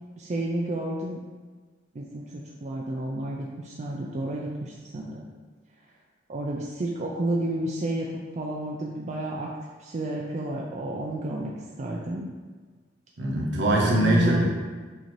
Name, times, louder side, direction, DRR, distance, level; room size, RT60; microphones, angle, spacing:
voice 1, 0.2-1.2 1.9-5.3 6.3-8.1 8.4-9.5 9.8-11.5 11.8-12.3 13.8-14.4, right 1 dB, 40° right, -2 dB, 0.4 m, -30 dB
voice 2, 13.2-14.4, right 1 dB, 65° right, -2 dB, 0.9 m, -22 dB
6.3 x 2.7 x 3.1 m, 1.4 s
head